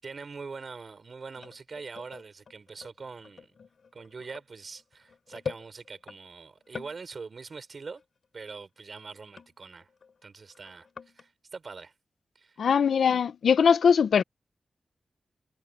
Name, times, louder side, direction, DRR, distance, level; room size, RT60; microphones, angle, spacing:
voice 1, 0.0-3.5 3.9-8.0 8.3-9.9 10.2-10.9 11.1-11.9 12.4-12.6, right 4 dB, 50° right, 5.7 m, -43 dB
sound 1, 1.4-6.2 6.6-7.1 7.4-7.6 8.0-8.1 9.1-10.2 10.5-11.3, left 5 dB, 60° left, 4.9 m, -44 dB
voice 2, 12.6-14.2, left 6 dB, 90° left, 0.8 m, -21 dB
wide cardioid pair, 120°, 0 cm